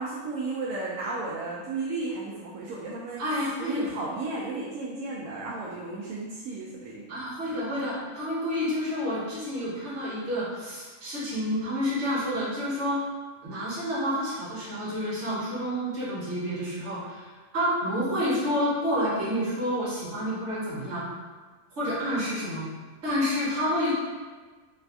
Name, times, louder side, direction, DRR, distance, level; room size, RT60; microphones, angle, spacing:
voice 1, 0.0-3.2 3.6-7.0, right 3 dB, 75° right, -5 dB, 1.0 m, -34 dB
voice 2, 3.2-3.9 7.1-13.0 13.4-21.0 21.7-22.7 23.0-23.9, equal, 55° right, -7 dB, 1.4 m, -29 dB
3.3 x 2.4 x 3.4 m, 1.4 s
omnidirectional pair, 1.5 m